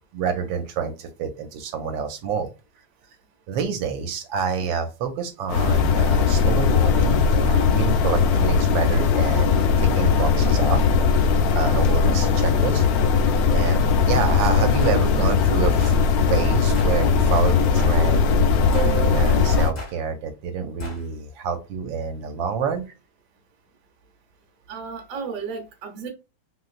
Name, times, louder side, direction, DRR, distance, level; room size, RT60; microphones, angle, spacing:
voice 1, 0.1-2.5 3.5-10.8 11.5-12.8 13.5-15.9 16.3-22.9, right 6 dB, 80° right, 6 dB, 1.3 m, -28 dB
sound 1, 5.5-19.7, left 5 dB, 90° left, 0.8 m, -19 dB
sound 2, 14.8-15.0 15.8-16.0 16.7-17.0 17.8-18.0 18.7-19.0 19.8-20.0 20.8-21.0, left 3 dB, 45° left, 0.5 m, -35 dB
voice 2, 24.7-26.1, right 5 dB, 55° right, 3 dB, 1.0 m, -33 dB
3.1 x 2.9 x 2.4 m, 0.29 s
omnidirectional pair, 2.1 m